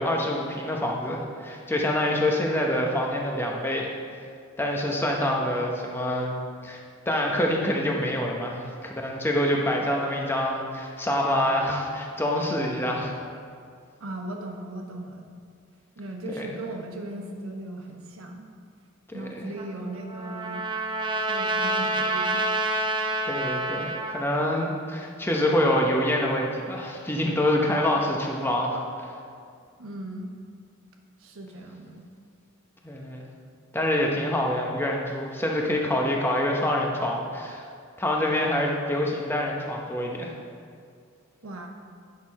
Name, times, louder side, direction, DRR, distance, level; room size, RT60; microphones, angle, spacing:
voice 1, 0.0-3.9 4.6-6.3 6.6-6.8 7.1-13.1 16.3-16.5 19.1-19.5 23.2-29.1 32.8-33.2 33.7-37.6 38.0-40.3, left 1 dB, 10° left, -1 dB, 0.8 m, -26 dB
voice 2, 14.0-15.3 16.0-18.5 19.1-20.7 21.2-22.8 29.8-30.3 31.2-32.1 41.4-41.7, right 2 dB, 75° right, 2 dB, 1.0 m, -37 dB
Trumpet, 19.6-24.2, right 2 dB, 20° right, 0.5 m, -28 dB
9.7 x 6.4 x 4.2 m, 2.2 s
head